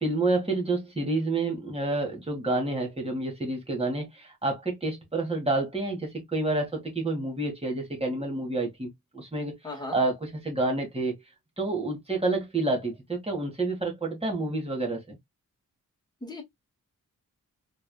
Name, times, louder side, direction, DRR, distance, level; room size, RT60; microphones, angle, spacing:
voice 1, 0.0-9.5 9.9-11.1 11.6-15.2, right 2 dB, 20° right, 1.9 m, -29 dB
voice 2, 9.6-10.0 16.2-16.4, left 2 dB, 10° left, 1.6 m, -36 dB
3.9 x 3.5 x 2.3 m
wide cardioid pair, 85°, 33 cm